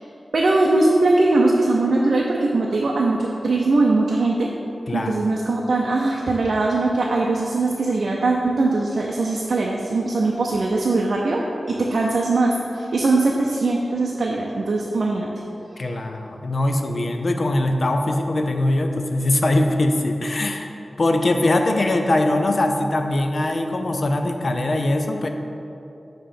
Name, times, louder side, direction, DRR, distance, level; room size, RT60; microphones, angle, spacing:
voice 1, 0.3-4.5 4.9-15.3, right 2 dB, 75° right, -2 dB, 0.5 m, -21 dB
voice 2, 4.9-5.2 15.8-20.7 21.0-25.3, left 1 dB, 55° left, 5 dB, 0.5 m, -21 dB
7.5 x 3.0 x 5.0 m, 2.8 s
wide cardioid pair, 95°, 0 cm